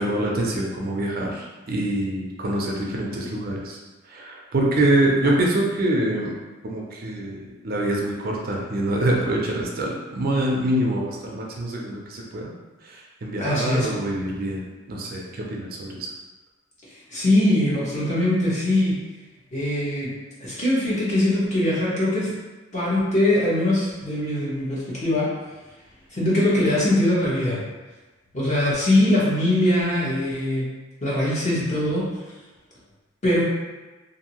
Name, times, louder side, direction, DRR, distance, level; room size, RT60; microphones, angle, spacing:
voice 1, 0.0-3.8 4.1-6.3 6.6-12.5 12.8-14.6 14.9-16.1, right 1 dB, 50° right, -1 dB, 0.5 m, -25 dB
voice 2, 13.4-13.9 17.1-19.0 19.5-20.1 20.4-22.3 22.7-25.3 26.1-27.6 28.3-30.6 31.0-32.0 33.2-33.4, left 1 dB, 35° left, -8 dB, 1.0 m, -21 dB
2.6 x 2.6 x 2.9 m, 1.2 s
head